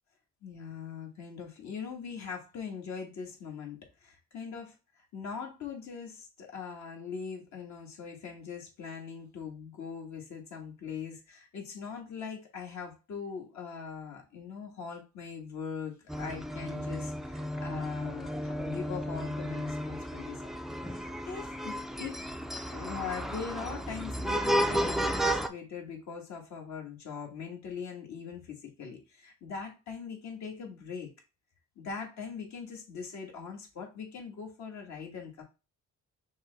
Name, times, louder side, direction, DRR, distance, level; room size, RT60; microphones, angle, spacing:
voice 1, 0.4-22.2 22.7-31.1 31.8-35.4, left 6 dB, 65° left, 0 dB, 1.5 m, -41 dB
sound 1, 16.1-25.5, equal, ahead, 0.4 m, -33 dB
5.9 x 2.2 x 3.9 m, 0.30 s
cardioid pair, 90°, 30 cm